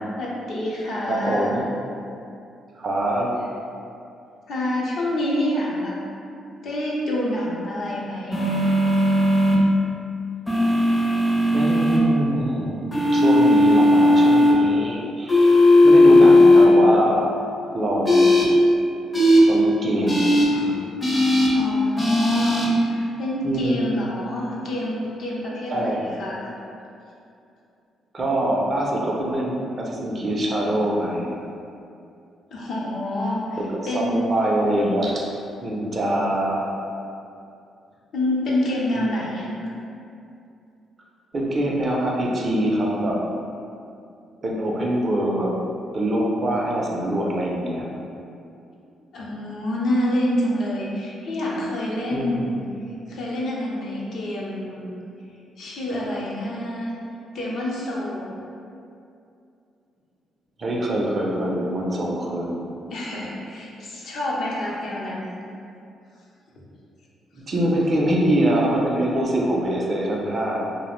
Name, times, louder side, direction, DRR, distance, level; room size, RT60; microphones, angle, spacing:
voice 1, 0.2-1.6 4.5-6.0 6.6-8.5 21.5-22.6 22.9-26.5 32.5-33.6 33.8-34.2 38.1-39.5 49.1-52.6 53.1-54.9 55.6-56.9 57.3-58.4 62.9-65.3, left 1 dB, 65° left, -4 dB, 0.5 m, -27 dB
voice 2, 1.1-1.6 2.8-3.3 11.5-18.5 19.5-20.8 23.4-24.0 25.7-26.0 28.1-31.3 33.7-35.3 35.6-36.7 39.0-39.1 41.3-43.2 44.4-45.5 45.9-47.9 52.1-52.6 60.6-62.6 67.5-70.6, right 1 dB, 40° right, -3 dB, 0.4 m, -24 dB
sound 1, 8.3-9.6 10.5-12.0 12.9-14.5 15.3-16.7 18.1-18.4 19.1-19.4 20.1-20.4 21.0-21.5 22.0-22.7, left 1 dB, 15° left, 0.5 m, -16 dB
2.4 x 2.0 x 3.0 m, 2.6 s
cardioid pair, 90°, 0 cm